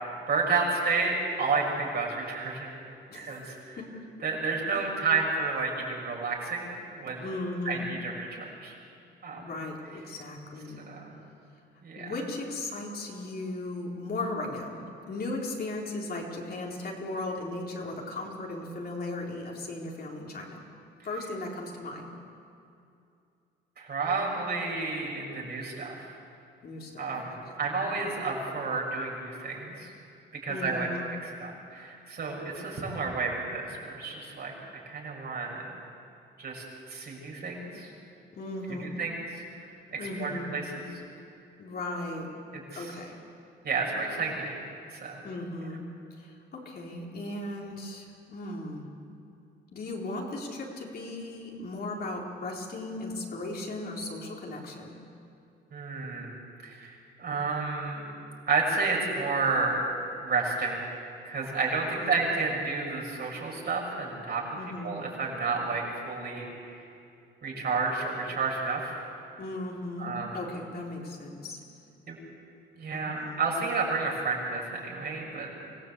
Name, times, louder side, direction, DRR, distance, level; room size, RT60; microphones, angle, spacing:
voice 1, 0.3-2.8 3.1-3.8 4.2-7.2 7.6-8.7 9.2-9.4 10.9-11.1 11.8-12.1 23.8-25.9 27.0-29.9 30.4-30.9 31.4-34.5 34.8-35.7 36.4-36.6 36.9-37.9 38.7-39.4 39.9-40.8 42.7-42.8 43.6-44.6 44.9-45.2 55.7-56.3 56.6-58.1 58.5-59.8 60.2-60.9 61.2-64.4 64.8-66.8 67.4-68.9 70.0-70.4 72.1-72.2 72.7-75.5, right 4 dB, 55° right, -1 dB, 6.6 m, -31 dB
voice 2, 3.1-4.1 4.7-4.8 7.2-7.9 9.4-10.9 12.0-20.6 21.0-22.1 26.6-27.5 30.5-31.1 38.3-38.9 40.0-40.5 41.6-42.4 42.7-43.2 45.2-45.9 46.2-48.9 49.7-55.0 62.0-62.2 64.5-64.9 69.4-71.6 72.9-73.4, left 2 dB, 50° left, -1 dB, 4.2 m, -37 dB
25.5 x 16.5 x 8.2 m, 2.5 s
cardioid pair, 90°, 20 cm